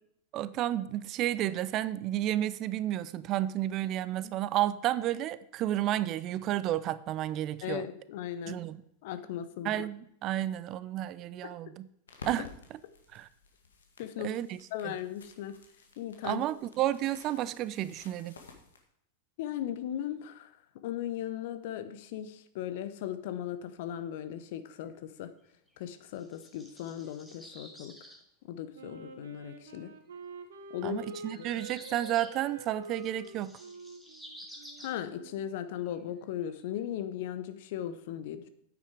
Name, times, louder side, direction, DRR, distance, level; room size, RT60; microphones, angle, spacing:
voice 1, 0.3-7.8 8.5-8.8 9.6-11.9 12.3-12.8 13.1-13.3 14.2-14.6 14.8-14.9 16.2-18.3 30.8-33.6, right 13 dB, 35° right, 17 dB, 0.4 m, -32 dB
voice 2, 7.6-8.6 9.0-9.8 14.0-14.3 14.7-15.5 16.0-16.4 19.4-20.5 20.8-25.3 25.8-27.9 28.5-29.9 30.7-31.0 31.3-31.4 34.8-38.5, left 10 dB, 50° left, 11 dB, 0.9 m, -37 dB
sound 1, 12.1-18.8, left 4 dB, 65° left, 1.9 m, -53 dB
sound 2, 25.7-28.2 29.8-29.9 31.1-32.4 32.8-35.0 35.8-36.0 36.4-36.7, equal, ahead, 2.0 m, -51 dB
Wind instrument woodwind instrument, 28.7-35.5, right 3 dB, 65° right, 1.1 m, -47 dB
9.6 x 8.7 x 4.8 m, 0.73 s
figure-of-eight pair, 90°, 0 cm